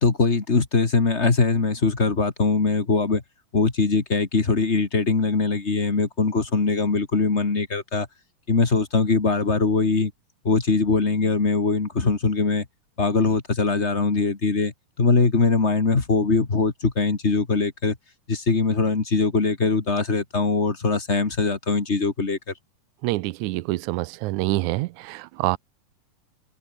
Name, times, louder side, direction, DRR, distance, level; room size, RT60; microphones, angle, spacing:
voice 1, 0.0-3.2 3.5-8.1 8.5-10.1 10.4-12.7 13.0-18.0 18.3-22.5, left 4 dB, 25° left, 1.8 m, -22 dB
voice 2, 23.0-25.6, right 20 dB, 80° right, 1.8 m, -26 dB
omnidirectional pair, 3.8 m